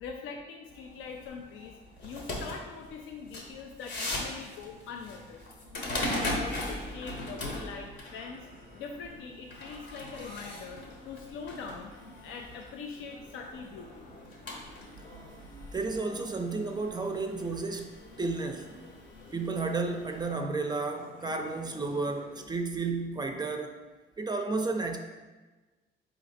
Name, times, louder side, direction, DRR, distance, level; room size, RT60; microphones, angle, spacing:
voice 1, 0.0-1.8 2.0-5.4 6.0-8.5 8.7-11.9 12.2-14.1, left 5 dB, 85° left, 2 dB, 0.4 m, -43 dB
sound 1, 0.7-20.3, left 1 dB, 65° left, 1.0 m, -40 dB
sound 2, 4.1-22.5, left 1 dB, 45° left, 0.7 m, -53 dB
voice 2, 15.7-18.8 19.3-23.8 24.2-25.0, right 3 dB, 20° right, 5 dB, 0.4 m, -32 dB
4.2 x 2.8 x 4.1 m, 1.2 s
cardioid pair, 90°, 20 cm